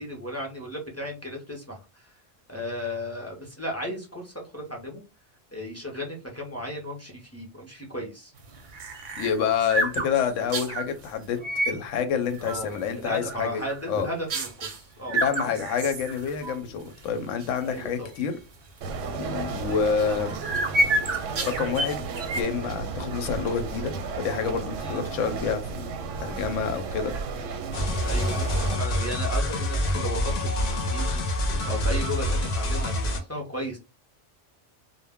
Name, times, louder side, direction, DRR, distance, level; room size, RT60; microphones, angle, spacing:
voice 1, 0.0-2.1 2.5-5.0 5.5-8.3 12.4-15.2 17.6-18.1 19.2-19.5 24.8-25.0 28.0-33.8, equal, 20° left, 0.4 m, -35 dB
sound 1, 8.4-10.9 11.4-11.8 12.3-12.9 13.2-13.9 14.3-14.8 15.1-16.5 16.9-17.0 17.4-17.6 18.2-18.3 19.7-22.4, right 1 dB, 55° right, 0.6 m, -29 dB
voice 2, 9.2-11.4 11.7-13.6 13.9-14.1 15.1-18.4 19.2-20.4 21.4-22.0 22.3-27.1, left 7 dB, 85° left, 0.9 m, -28 dB
sound 2, 18.8-28.8, right 4 dB, 85° right, 0.9 m, -33 dB
sound 3, 27.7-33.2, left 1 dB, 60° left, 0.7 m, -26 dB
2.2 x 2.0 x 3.4 m
omnidirectional pair, 1.3 m